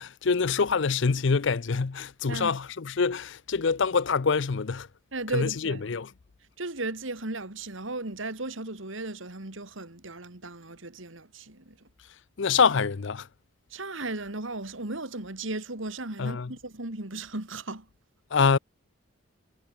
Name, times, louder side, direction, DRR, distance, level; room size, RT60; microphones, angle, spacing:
voice 1, 0.0-4.9 5.3-6.1 12.4-13.3 16.2-16.5 18.3-18.6, left 5 dB, 60° left, 0.6 m, -25 dB
voice 2, 5.1-5.9 6.6-11.9 13.7-17.9, right 2 dB, 70° right, 2.7 m, -36 dB
head